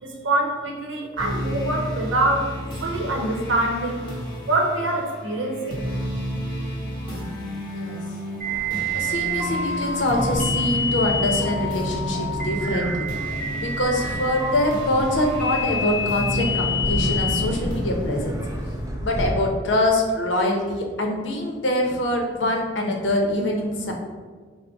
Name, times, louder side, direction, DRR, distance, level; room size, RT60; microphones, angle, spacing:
voice 1, 0.0-2.5 2.8-4.0 4.5-5.8, right 2 dB, 85° right, 0 dB, 0.8 m, -24 dB
sound 1, 1.2-18.9, equal, 25° left, 0.8 m, -31 dB
voice 2, 7.7-8.0 8.9-13.1 13.6-18.3 19.0-23.9, left 1 dB, 70° left, 1 dB, 0.6 m, -24 dB
sound 2, 8.4-17.4, left 1 dB, 35° right, 1.2 m, -28 dB
sound 3, 8.5-19.3, equal, 20° right, 0.4 m, -34 dB
4.5 x 2.1 x 3.8 m, 1.5 s
head